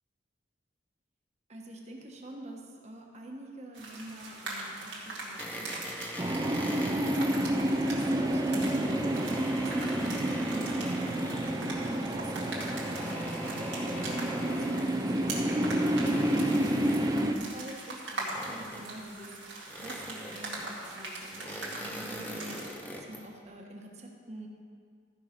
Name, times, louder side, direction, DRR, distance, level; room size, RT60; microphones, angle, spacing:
voice 1, 1.5-7.3 7.5-9.0 9.6-11.4 11.7-19.3 19.8-22.6 23.1-24.5, right 1 dB, 35° right, 0 dB, 1.2 m, -46 dB
sound 1, 3.7-22.7, right 2 dB, 85° right, 2.1 m, -42 dB
sound 2, 5.4-7.5 8.4-11.7 12.5-14.9 15.6-17.3 18.2-19.1 19.7-20.7 21.3-23.3, equal, 10° left, 0.8 m, -43 dB
sound 3, 6.2-17.4, right 1 dB, 20° right, 0.5 m, -29 dB
14.0 x 5.6 x 5.2 m, 2.1 s
head